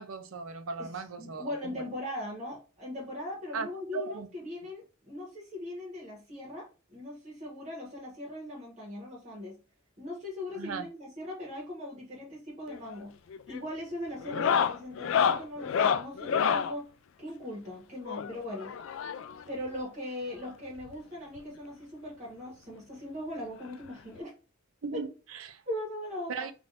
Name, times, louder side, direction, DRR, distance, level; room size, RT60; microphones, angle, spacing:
voice 1, 0.0-1.9 3.5-3.7 3.9-4.3 10.5-10.9 24.8-25.6 26.3-26.5, right 5 dB, 85° right, 0.5 m, -37 dB
voice 2, 1.2-9.6 10.0-13.1 13.4-16.9 17.2-18.7 19.5-24.3 24.9-25.0 25.7-26.5, left 1 dB, 35° right, 1.2 m, -39 dB
sound 1, 12.7-13.0 13.3-13.7 14.2-16.7 18.1-19.4 20.5-20.6 20.8-20.9 21.4-21.5 22.8-22.9 24.2-24.3, left 7 dB, 65° left, 0.3 m, -29 dB
3.4 x 2.5 x 2.5 m
head